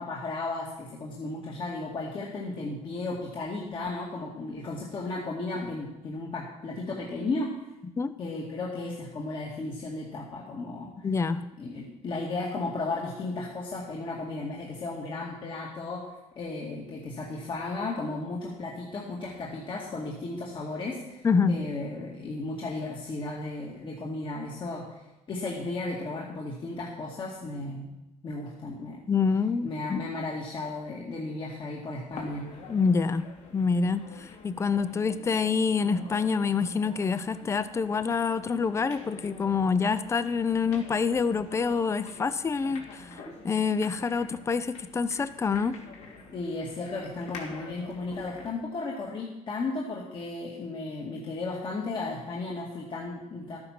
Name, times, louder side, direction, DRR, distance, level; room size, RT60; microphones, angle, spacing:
voice 1, 0.0-7.5 8.2-11.1 11.6-25.0 25.3-27.9 28.2-29.0 29.6-32.5 46.3-53.6, left 3 dB, 45° left, -3 dB, 2.1 m, -34 dB
voice 2, 11.0-11.4 21.2-21.6 29.1-30.0 32.7-33.2 33.5-43.1 43.4-45.7, left 5 dB, 20° left, 13 dB, 0.6 m, -26 dB
sound 1, 32.1-48.6, left 3 dB, 65° left, 2.9 m, -47 dB
13.0 x 9.6 x 5.9 m, 0.96 s
cardioid pair, 130°, 12 cm